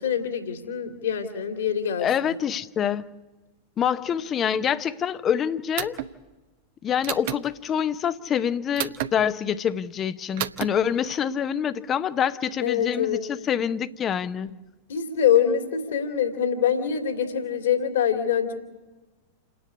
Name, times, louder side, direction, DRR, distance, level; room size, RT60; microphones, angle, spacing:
voice 1, 0.0-2.1 12.6-13.2 14.9-18.5, left 8 dB, 65° left, 2.4 m, -24 dB
voice 2, 2.0-3.0 3.8-6.0 6.8-14.6, left 8 dB, 30° left, 0.8 m, -26 dB
sound 1, 5.8-6.1 7.0-7.4 8.8-9.1 10.4-10.7, right 12 dB, 55° right, 1.0 m, -30 dB
28.5 x 10.5 x 9.8 m
figure-of-eight pair, 90°, 0 cm